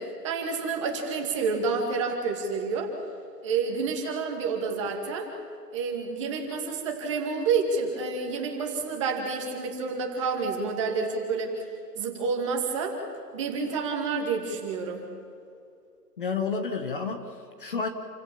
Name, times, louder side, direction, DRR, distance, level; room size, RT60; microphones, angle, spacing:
voice 1, 0.0-2.9 3.4-5.3 5.7-11.6 12.0-13.0 13.3-15.1, right 4 dB, 20° right, 1 dB, 2.3 m, -29 dB
voice 2, 16.2-17.9, left 5 dB, 35° left, 6 dB, 1.4 m, -30 dB
28.5 x 16.0 x 7.1 m, 2.5 s
hypercardioid pair, 170°, 48 cm